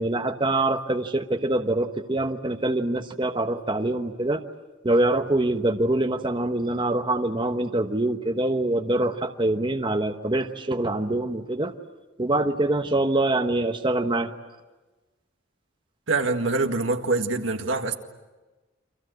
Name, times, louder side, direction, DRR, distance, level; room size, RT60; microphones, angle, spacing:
voice 1, 0.0-4.4 4.8-11.7 12.2-14.3, right 2 dB, 25° right, 1.1 m, -24 dB
voice 2, 16.1-17.9, right 3 dB, 80° right, 1.9 m, -24 dB
29.0 x 25.5 x 8.0 m
head